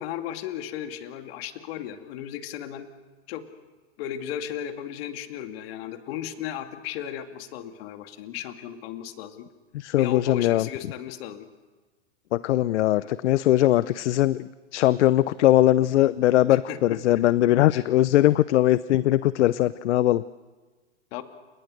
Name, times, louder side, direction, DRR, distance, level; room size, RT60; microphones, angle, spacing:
voice 1, 0.0-2.9 3.3-3.5 4.0-9.5 10.0-11.5 13.0-13.2 16.5-17.0 17.7-17.8 21.1-21.2, left 10 dB, 55° left, 6 dB, 2.5 m, -35 dB
voice 2, 9.7-10.7 12.3-20.2, left 14 dB, 70° left, 17 dB, 0.7 m, -21 dB
30.0 x 28.0 x 6.6 m, 1.3 s
hypercardioid pair, 120°, 36 cm